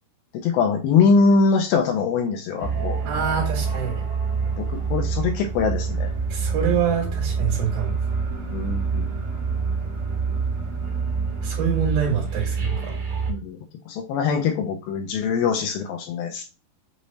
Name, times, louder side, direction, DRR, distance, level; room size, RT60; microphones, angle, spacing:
voice 1, 0.3-3.0 4.6-6.1 8.5-9.1 13.3-13.6 13.9-16.4, left 5 dB, 85° left, 5 dB, 2.1 m, -22 dB
sound 1, 2.6-13.3, right 5 dB, 80° right, 1.2 m, -26 dB
voice 2, 3.0-4.1 6.3-8.0 11.4-12.9, right 7 dB, 65° right, -3 dB, 2.9 m, -25 dB
6.5 x 3.1 x 2.7 m, 0.31 s
omnidirectional pair, 4.7 m